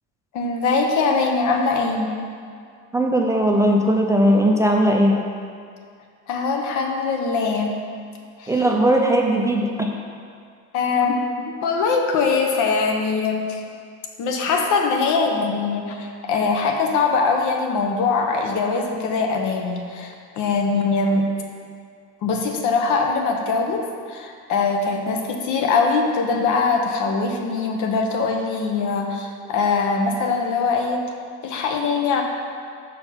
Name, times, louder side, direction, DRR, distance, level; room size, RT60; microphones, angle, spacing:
voice 1, 0.3-2.1 6.3-7.7 8.4-8.6 10.7-11.2 11.6-13.6 14.2-21.3 22.2-31.0 31.4-32.2, left 4 dB, 70° left, 2 dB, 0.9 m, -22 dB
voice 2, 2.9-5.2 8.5-9.9, right 1 dB, 10° right, 0 dB, 0.5 m, -18 dB
5.4 x 4.4 x 5.6 m, 2.2 s
cardioid pair, 125°, 32 cm